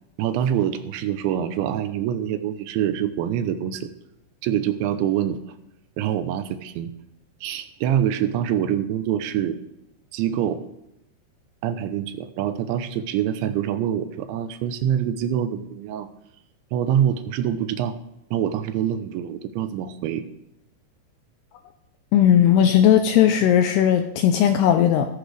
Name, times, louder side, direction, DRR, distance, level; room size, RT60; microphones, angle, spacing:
voice 1, 0.2-3.9 4.4-5.4 6.0-6.9 7.4-9.6 10.1-10.6 11.6-16.1 16.7-18.0 18.3-20.2, right 10 dB, 80° right, 10 dB, 3.0 m, -25 dB
voice 2, 22.1-25.1, left 10 dB, 85° left, 7 dB, 2.4 m, -17 dB
15.5 x 14.0 x 3.3 m, 0.84 s
omnidirectional pair, 5.3 m